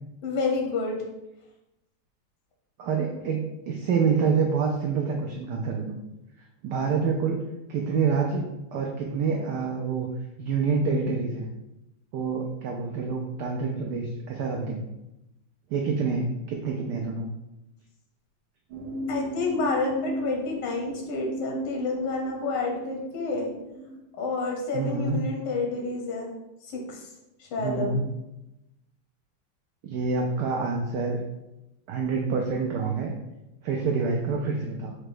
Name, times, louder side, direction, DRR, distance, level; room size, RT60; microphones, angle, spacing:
voice 1, 0.2-1.0 19.1-23.5 24.2-26.3 26.6-27.1 27.4-27.9, left 3 dB, 85° left, 1 dB, 1.7 m, -29 dB
voice 2, 2.8-6.0 6.6-7.4 7.7-8.4 8.7-10.1 10.4-11.4 12.1-14.8 15.7-17.3 24.7-25.2 27.6-28.0 29.8-31.2 31.9-33.1 33.6-35.0, right 5 dB, 85° right, 1 dB, 0.9 m, -27 dB
sound 1, 18.7-24.0, right 1 dB, 70° right, 1.6 m, -35 dB
4.8 x 2.2 x 4.8 m, 0.94 s
omnidirectional pair, 2.4 m